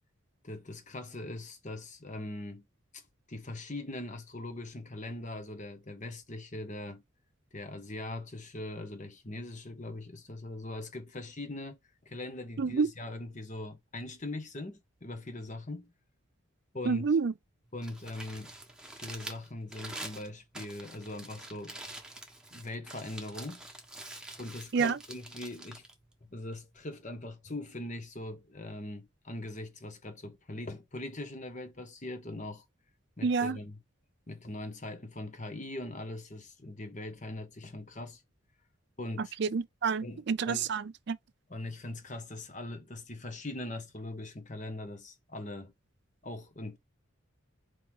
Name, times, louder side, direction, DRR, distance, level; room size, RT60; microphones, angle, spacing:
voice 1, 0.4-2.6 2.9-3.0 3.3-7.0 7.5-11.8 12.0-15.9 16.7-17.1 17.7-18.5 19.0-21.8 22.5-23.6 24.4-25.8 26.3-32.6 33.2-33.8 34.3-38.2 39.0-39.3 40.0-40.7 41.5-45.7 46.2-46.8, left 2 dB, 35° left, 1.4 m, -41 dB
voice 2, 16.9-17.3 24.7-25.0 33.2-33.6 39.2-41.2, right 5 dB, 55° right, 0.4 m, -29 dB
Crumpling crinkling, 17.7-26.8, right 2 dB, 5° right, 1.2 m, -46 dB
5.4 x 4.7 x 4.0 m
head